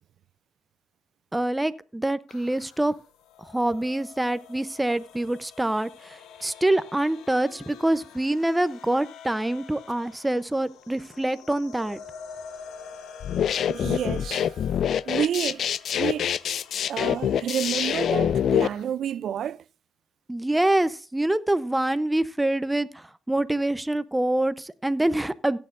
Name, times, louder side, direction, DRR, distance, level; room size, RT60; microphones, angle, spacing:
voice 1, 1.3-2.9 3.5-12.0 20.3-25.6, right 1 dB, 10° right, 0.6 m, -25 dB
sound 1, 2.3-18.8, left 6 dB, 85° left, 0.9 m, -47 dB
sound 2, 13.2-18.7, left 9 dB, 65° left, 0.4 m, -25 dB
voice 2, 13.7-14.5 15.1-15.6 15.9-16.3 16.9-19.6, right 9 dB, 65° right, 0.4 m, -29 dB
16.5 x 8.7 x 2.5 m
cardioid pair, 90°, 0 cm